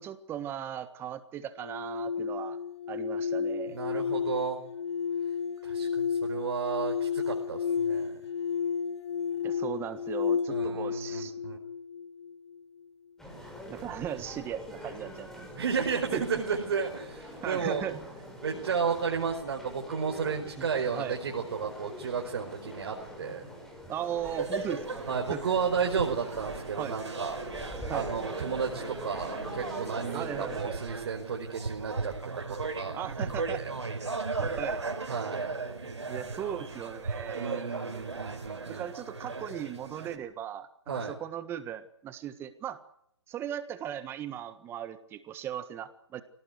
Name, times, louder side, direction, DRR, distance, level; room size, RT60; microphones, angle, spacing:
voice 1, 0.0-2.6 2.9-3.8 9.4-11.3 13.7-15.5 16.1-16.2 17.4-17.9 20.6-21.1 23.9-24.8 25.3-25.4 26.8-26.9 27.9-28.1 30.1-30.8 32.9-33.6 34.4-34.8 35.8-37.7 38.7-42.8 43.3-46.2, right 10 dB, 15° right, 12 dB, 1.5 m, -38 dB
sound 1, 1.6-12.6, left 6 dB, 70° left, 1.2 m, -32 dB
voice 2, 3.7-4.6 5.6-8.2 10.5-11.6 15.6-18.0 18.4-23.4 25.1-27.4 27.9-32.9 33.2-33.7 35.1-35.5 37.3-38.8 40.9-41.1, right 6 dB, 60° right, 1 dB, 4.7 m, -33 dB
sound 2, 13.2-30.6, equal, 5° left, 6.5 m, -44 dB
sound 3, 24.2-40.2, right 4 dB, 85° right, 5.1 m, -37 dB
26.5 x 18.5 x 8.2 m, 0.72 s
hypercardioid pair, 145°, 14 cm